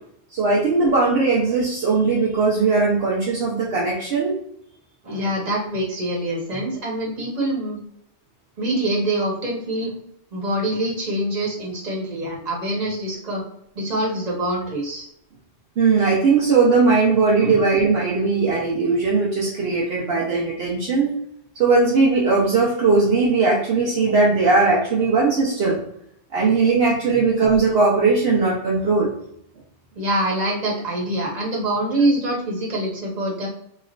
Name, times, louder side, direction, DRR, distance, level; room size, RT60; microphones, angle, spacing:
voice 1, 0.3-4.3 15.8-21.1 21.6-25.8 26.3-29.1, right 4 dB, 65° right, -4 dB, 0.9 m, -19 dB
voice 2, 5.0-7.8 8.6-9.9 10.3-13.4 13.7-15.1 17.4-17.6 27.1-27.2 30.0-33.5, right 1 dB, 40° right, -3 dB, 1.2 m, -25 dB
3.2 x 2.9 x 2.4 m, 0.71 s
omnidirectional pair, 1.2 m